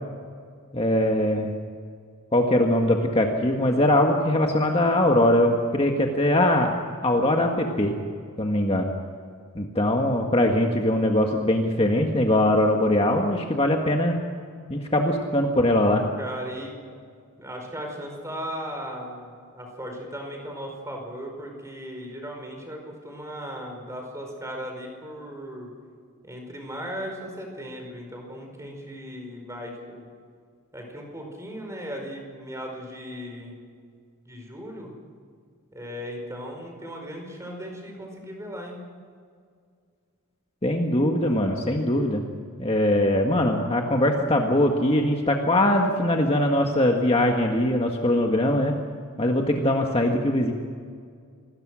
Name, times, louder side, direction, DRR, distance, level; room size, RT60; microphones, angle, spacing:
voice 1, 0.7-1.5 2.3-6.7 7.0-7.9 8.4-8.9 9.5-14.1 14.7-16.0 40.6-42.3 42.6-48.7 49.2-50.5, left 1 dB, 25° left, 2 dB, 1.6 m, -21 dB
voice 2, 16.2-16.7 17.4-25.7 26.2-30.1 30.7-33.6 34.2-34.9 35.7-38.8, equal, 15° right, 2 dB, 5.0 m, -37 dB
27.5 x 20.5 x 6.3 m, 2.1 s
head